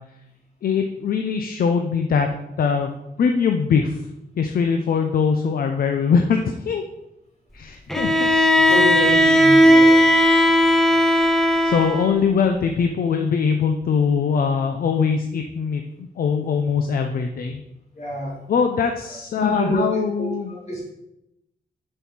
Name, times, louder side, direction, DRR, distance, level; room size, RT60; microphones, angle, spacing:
voice 1, 0.6-2.3 2.6-2.9 3.2-4.0 4.4-6.4 6.7-6.8 7.5-8.3 11.6-17.6 18.5-20.5, left 6 dB, 60° left, 5 dB, 0.7 m, -22 dB
Bowed string instrument, 7.9-12.2, equal, ahead, 0.6 m, -16 dB
voice 2, 8.7-10.1 17.9-18.4 19.4-20.9, equal, 40° left, -3 dB, 2.8 m, -27 dB
7.1 x 5.6 x 6.2 m, 0.87 s
wide cardioid pair, 175°, 17 cm